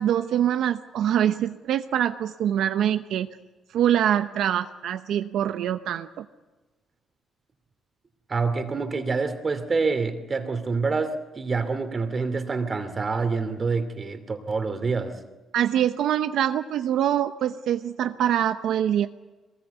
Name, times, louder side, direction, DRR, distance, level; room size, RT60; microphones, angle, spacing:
voice 1, 0.0-3.3 3.7-6.3 15.5-19.1, right 10 dB, 80° right, 8 dB, 0.8 m, -24 dB
voice 2, 8.3-15.2, right 4 dB, 35° right, 8 dB, 2.6 m, -27 dB
22.5 x 20.5 x 8.2 m, 1.2 s
cardioid pair, 90°, 0 cm